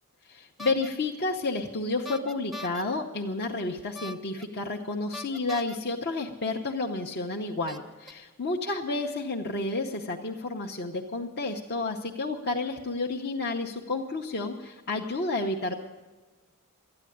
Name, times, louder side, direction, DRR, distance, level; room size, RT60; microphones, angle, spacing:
voice 1, 0.3-15.7, left 3 dB, 50° left, 0 dB, 0.9 m, -31 dB
sound 1, 0.6-0.9 2.1-2.8 3.9-4.4 5.1-5.8 6.8-6.9 7.7-8.1, left 1 dB, ahead, 0.6 m, -40 dB
13.5 x 9.8 x 9.8 m, 1.3 s
head